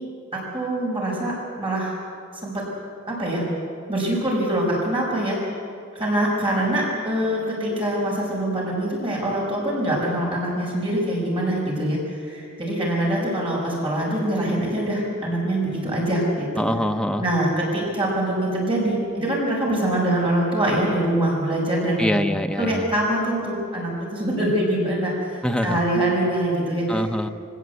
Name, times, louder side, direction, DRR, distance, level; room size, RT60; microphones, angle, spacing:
voice 1, 0.3-1.3 1.6-2.0 2.4-2.6 3.1-3.4 3.9-5.4 5.9-16.6 17.2-22.2 22.6-26.8, right 1 dB, 25° right, -4 dB, 6.0 m, -24 dB
voice 2, 16.6-17.3 22.0-22.9 25.4-25.8 26.9-27.3, equal, 5° left, 4 dB, 0.8 m, -24 dB
24.5 x 17.5 x 8.3 m, 2.4 s
head